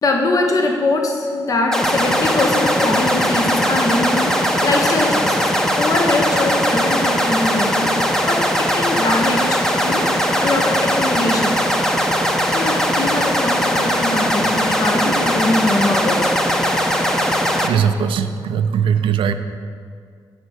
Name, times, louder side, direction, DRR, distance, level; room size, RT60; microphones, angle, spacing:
voice 1, 0.0-10.1 10.4-11.6 12.5-16.3, left 2 dB, 45° left, 2 dB, 0.8 m, -22 dB
sound 1, 1.7-17.7, equal, 5° left, 0.7 m, -19 dB
voice 2, 17.6-19.3, right 7 dB, 90° right, 9 dB, 0.4 m, -19 dB
8.3 x 4.4 x 6.1 m, 2.1 s
cardioid pair, 85°, 9 cm